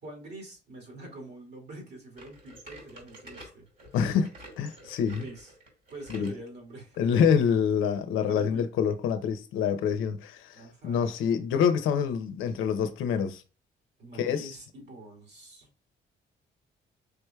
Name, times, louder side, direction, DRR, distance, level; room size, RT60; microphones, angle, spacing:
voice 1, 0.0-3.7 5.1-5.5 5.9-7.1 8.1-8.6 10.5-11.1 14.0-15.7, right 1 dB, 60° right, 2.3 m, -45 dB
sound 1, 2.2-6.4 6.9-7.1 7.8-7.9 8.7-8.8, right 1 dB, 45° right, 2.0 m, -49 dB
voice 2, 3.9-4.3 4.6-5.2 6.1-6.3 7.0-13.4 14.2-14.5, left 7 dB, 90° left, 0.7 m, -26 dB
4.9 x 3.2 x 2.3 m
cardioid pair, 90°, 20 cm